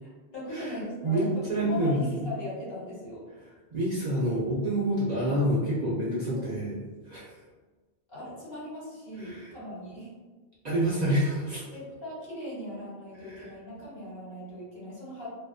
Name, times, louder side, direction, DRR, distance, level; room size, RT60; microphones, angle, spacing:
voice 1, 0.0-3.2 6.2-6.5 8.1-10.1 11.7-15.3, left 1 dB, 60° left, -8 dB, 1.3 m, -39 dB
voice 2, 1.0-2.3 3.7-6.8 7.1-7.3 9.2-9.5 10.6-11.6 13.2-13.5, right 1 dB, 50° right, -7 dB, 0.5 m, -28 dB
2.4 x 2.3 x 2.3 m, 1.3 s
omnidirectional pair, 1.1 m